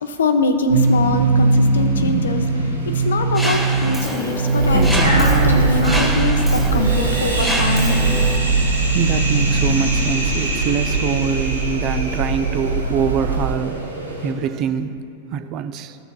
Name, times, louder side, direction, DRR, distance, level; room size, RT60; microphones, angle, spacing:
voice 1, 0.0-8.0, left 3 dB, 65° left, 7 dB, 0.6 m, -23 dB
sound 1, 0.7-14.3, right 2 dB, 85° right, 1.4 m, -21 dB
Mechanisms, 3.3-8.4, right 1 dB, ahead, 1.6 m, -27 dB
sound 2, 4.6-13.5, right 4 dB, 90° left, 1.0 m, -23 dB
voice 2, 8.9-13.8 14.2-15.0 15.3-16.0, right 7 dB, 35° right, 10 dB, 0.4 m, -24 dB
14.5 x 6.6 x 2.4 m, 2.4 s
figure-of-eight pair, 90°, 0 cm